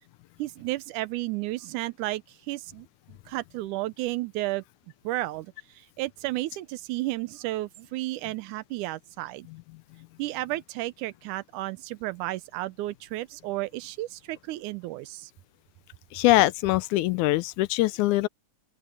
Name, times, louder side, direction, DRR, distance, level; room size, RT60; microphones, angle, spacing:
voice 1, 0.4-4.6 5.0-9.5 10.2-15.3, right 18 dB, 85° right, 2.2 m, -33 dB
voice 2, 16.1-18.3, left 17 dB, 80° left, 2.0 m, -23 dB
open air
omnidirectional pair, 3.5 m